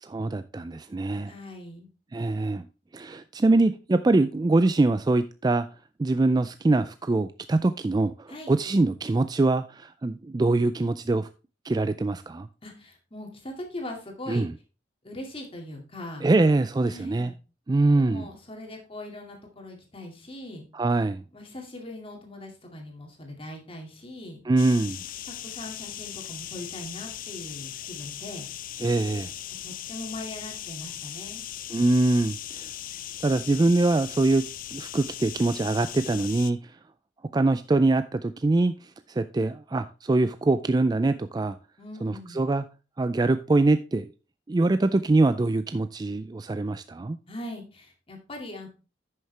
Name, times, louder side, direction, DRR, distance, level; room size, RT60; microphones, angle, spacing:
voice 1, 0.0-1.3 2.1-2.7 2.9-5.7 6.0-11.3 11.6-12.5 14.3-14.5 16.2-17.3 17.7-18.3 20.7-21.2 24.5-25.0 28.8-29.3 31.7-32.7 33.2-34.4 34.7-36.6 37.3-38.7 39.1-41.5 42.0-42.6 43.0-44.1 44.5-47.2, right 2 dB, 20° right, 0.3 m, -23 dB
voice 2, 1.3-1.9 8.3-8.6 12.6-14.5 15.0-16.3 16.9-17.4 17.9-20.6 21.3-24.4 25.3-28.5 29.5-31.5 41.8-42.4 47.3-48.7, left 1 dB, 30° left, 2.3 m, -40 dB
sound 1, 24.6-36.5, left 12 dB, 50° left, 0.5 m, -39 dB
10.5 x 6.5 x 3.3 m
head